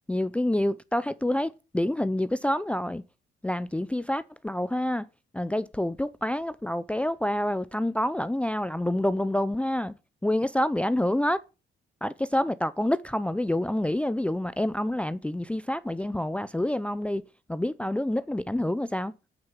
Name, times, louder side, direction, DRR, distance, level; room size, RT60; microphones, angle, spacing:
voice 1, 0.1-3.0 3.4-5.1 5.3-10.0 10.2-11.4 12.0-17.2 17.5-19.1, left 1 dB, 5° left, 0.6 m, -27 dB
9.0 x 7.5 x 8.2 m
cardioid pair, 90°, 20 cm